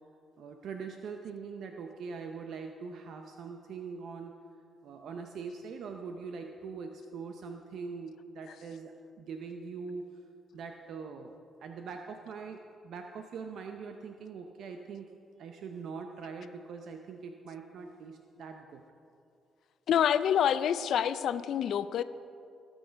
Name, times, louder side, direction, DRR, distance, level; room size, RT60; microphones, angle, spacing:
voice 1, 0.4-4.4 4.8-10.0 10.5-15.1 15.4-18.8, right 5 dB, 70° right, 4 dB, 0.6 m, -42 dB
voice 2, 19.9-22.0, left 9 dB, 70° left, 14 dB, 0.4 m, -27 dB
18.0 x 6.3 x 5.1 m, 2.5 s
cardioid pair, 90°, 0 cm